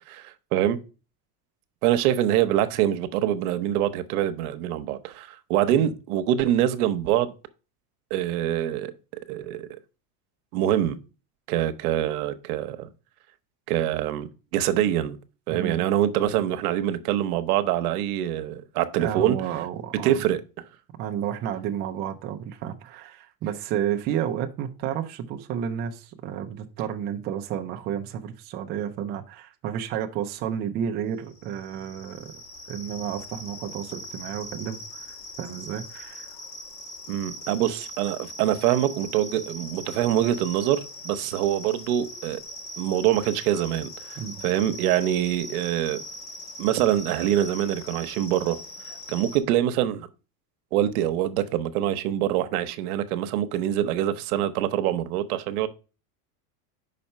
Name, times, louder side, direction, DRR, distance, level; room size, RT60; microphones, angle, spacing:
voice 1, 0.1-0.8 1.8-7.3 8.1-8.9 9.3-9.7 10.5-11.0 11.5-12.9 13.7-15.2 15.5-19.4 20.0-20.4 37.1-42.4 42.8-44.2 44.4-46.0 46.6-48.6 49.1-50.1 50.7-55.7, right 12 dB, 75° right, 0.9 m, -25 dB
voice 2, 15.5-15.8 19.0-20.2 21.0-32.3 32.7-36.3 44.2-44.4, right 9 dB, 25° right, 0.4 m, -31 dB
sound 1, 31.2-49.4, left 1 dB, 40° left, 1.8 m, -41 dB
5.6 x 4.2 x 5.4 m
supercardioid pair, 160°, 45 cm